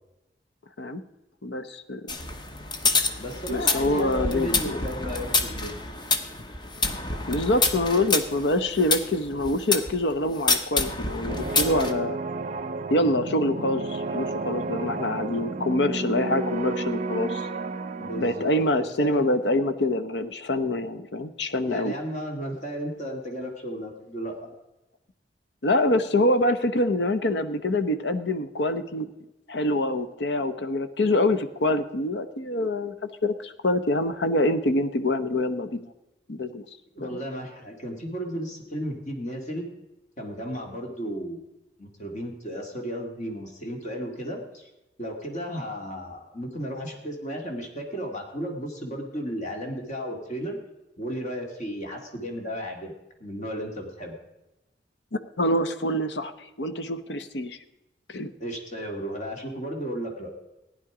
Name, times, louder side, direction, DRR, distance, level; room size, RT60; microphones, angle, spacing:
voice 1, 1.4-2.2 3.5-4.8 7.3-12.2 12.9-17.5 18.2-21.9 25.6-29.1 29.5-32.9 33.2-35.9 36.3-36.6 37.0-37.2 55.1-57.6 58.1-58.3, left 1 dB, 75° left, 10 dB, 0.8 m, -25 dB
sound 1, 2.1-9.9 10.5-11.9, left 3 dB, 25° left, 0.9 m, -27 dB
voice 2, 3.2-5.8 18.0-19.3 21.7-24.5 36.9-39.7 40.2-41.4 41.8-44.7 45.0-50.6 51.0-52.9 53.2-54.2 58.4-60.3, equal, 45° left, 2 dB, 2.2 m, -34 dB
sound 2, 11.3-18.6, right 3 dB, 45° right, 0.5 m, -32 dB
15.0 x 9.9 x 4.9 m, 0.97 s
head